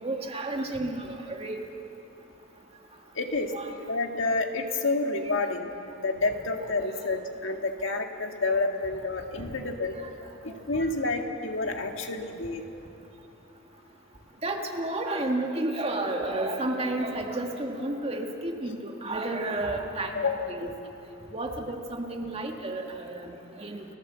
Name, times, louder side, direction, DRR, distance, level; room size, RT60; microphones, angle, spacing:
voice 1, 0.0-1.6 3.4-3.7 9.4-9.5 14.4-20.7 21.3-23.8, right 2 dB, 30° right, 2 dB, 1.8 m, -31 dB
voice 2, 3.2-3.5 3.9-5.7 6.0-9.9 10.4-12.6 20.1-20.3, left 3 dB, 70° left, 4 dB, 1.8 m, -29 dB
29.5 x 15.0 x 7.5 m, 2.9 s
head